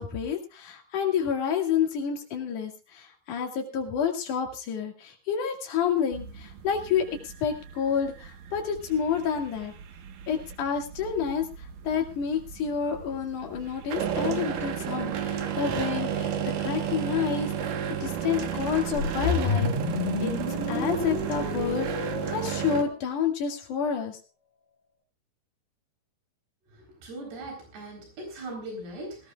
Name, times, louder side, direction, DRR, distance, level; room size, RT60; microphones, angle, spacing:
voice 1, 0.0-7.0 7.4-9.7 10.3-11.5 11.8-16.3 16.6-17.7 18.0-19.7 20.2-20.3 20.7-24.2, left 7 dB, 55° left, 3 dB, 3.4 m, -29 dB
sound 1, 6.1-22.8, right 8 dB, 65° right, 2.7 m, -33 dB
sound 2, 18.9-23.2, left 5 dB, 80° left, 4.2 m, -30 dB
voice 2, 26.7-29.3, right 1 dB, 90° right, 2 dB, 6.3 m, -40 dB
20.5 x 17.0 x 2.4 m, 0.29 s
omnidirectional pair, 4.5 m